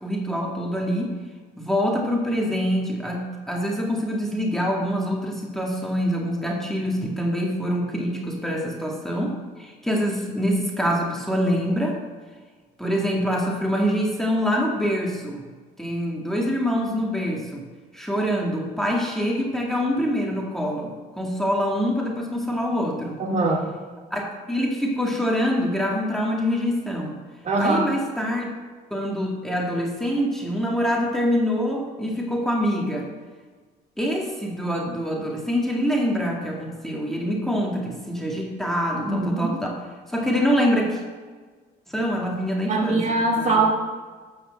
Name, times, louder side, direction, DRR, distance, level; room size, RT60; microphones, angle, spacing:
voice 1, 0.0-1.2 1.6-12.0 12.8-15.4 15.8-17.6 17.9-23.2 24.1-27.2 27.6-28.5 28.9-33.1 34.0-41.0 41.9-43.6, equal, ahead, -2 dB, 2.1 m, -25 dB
voice 2, 23.2-23.7 27.4-27.8 39.0-39.5 42.7-43.7, right 3 dB, 45° right, -1 dB, 2.4 m, -22 dB
13.0 x 5.0 x 7.6 m, 1.5 s
cardioid pair, 110°, 17 cm